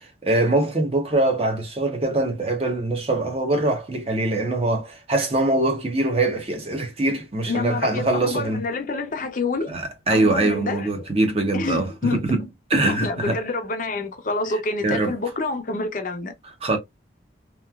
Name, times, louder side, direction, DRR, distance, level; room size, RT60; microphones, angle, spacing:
voice 1, 0.2-8.6 9.7-13.4 14.8-15.2 16.4-16.8, right 2 dB, 30° right, 0.7 m, -23 dB
voice 2, 7.5-9.7 10.1-10.9 11.5-12.2 12.9-16.3, left 3 dB, 45° left, 0.5 m, -27 dB
3.0 x 2.3 x 2.2 m
head